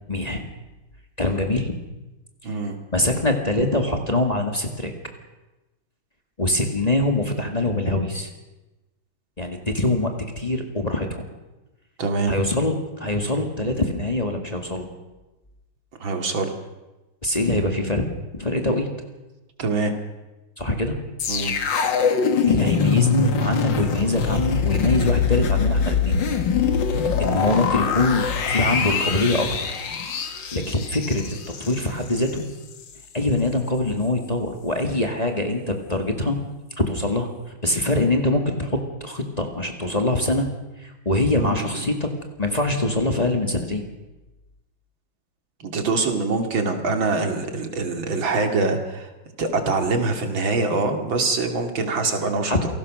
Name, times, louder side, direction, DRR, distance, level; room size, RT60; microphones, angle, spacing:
voice 1, 0.1-0.5 1.2-1.7 2.9-4.9 6.4-8.3 9.4-11.2 12.3-14.9 17.2-18.1 18.3-18.9 20.6-21.0 22.4-26.2 26.9-29.7 30.5-32.5 33.1-36.4 36.8-40.5 40.8-42.1 42.4-43.8 52.5-52.6, left 2 dB, 20° left, 3 dB, 2.1 m, -23 dB
voice 2, 2.4-2.8 12.0-12.3 16.0-16.5 19.6-19.9 21.3-21.5 27.3-27.5 41.4-41.9 45.6-49.1 49.4-52.6, right 3 dB, 70° right, 5 dB, 3.1 m, -24 dB
sound 1, 21.2-32.4 32.7-32.9, left 5 dB, 65° left, 2.3 m, -23 dB
28.0 x 18.0 x 6.4 m, 1.1 s
omnidirectional pair, 2.2 m